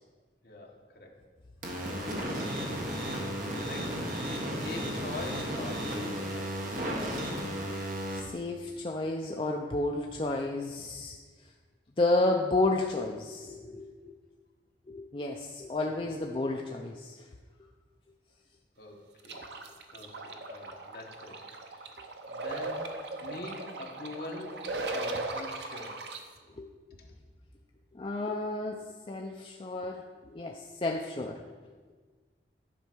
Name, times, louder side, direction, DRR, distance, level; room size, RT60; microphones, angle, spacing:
voice 1, 0.4-1.2 3.5-6.7 15.9-16.2 18.8-19.5 19.9-21.4 21.9-26.0 27.0-27.2, left 2 dB, 55° left, 0 dB, 1.3 m, -44 dB
sound 1, 1.6-8.2, equal, 50° right, 1.4 m, -34 dB
voice 2, 8.1-11.1 12.0-14.1 14.9-17.2 26.6-26.7 28.0-28.8 29.1-30.0 30.3-31.4, left 2 dB, 30° left, 1 dB, 0.5 m, -31 dB
sound 2, 19.2-26.2, right 2 dB, 75° right, 0.8 m, -38 dB
10.0 x 4.5 x 6.1 m, 1.4 s
head